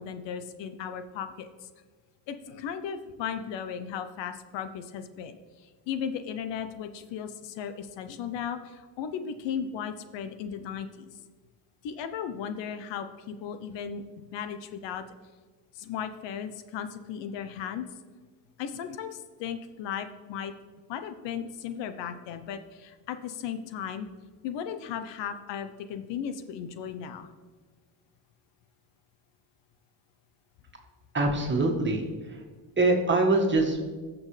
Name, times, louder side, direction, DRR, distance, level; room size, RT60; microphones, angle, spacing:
voice 1, 0.0-1.5 2.3-5.4 5.9-11.1 11.8-14.0 14.3-15.0 15.7-17.9 18.6-20.5 20.9-24.1 24.4-27.3, left 8 dB, 75° left, 9 dB, 0.8 m, -36 dB
voice 2, 31.1-32.4 32.8-33.8, right 2 dB, 25° right, 1 dB, 1.8 m, -24 dB
15.5 x 6.2 x 3.3 m, 1.4 s
cardioid pair, 90°, 44 cm